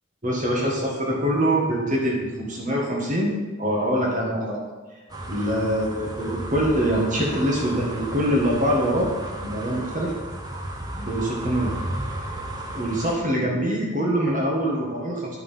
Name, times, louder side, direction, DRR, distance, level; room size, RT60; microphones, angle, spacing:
voice 1, 0.2-4.6 5.3-9.1 9.4-10.1 11.0-11.7 12.7-15.4, equal, 40° right, -3 dB, 1.7 m, -24 dB
sound 1, 5.1-13.1, right 1 dB, 20° right, 1.0 m, -33 dB
11.0 x 5.6 x 5.7 m, 1.3 s
head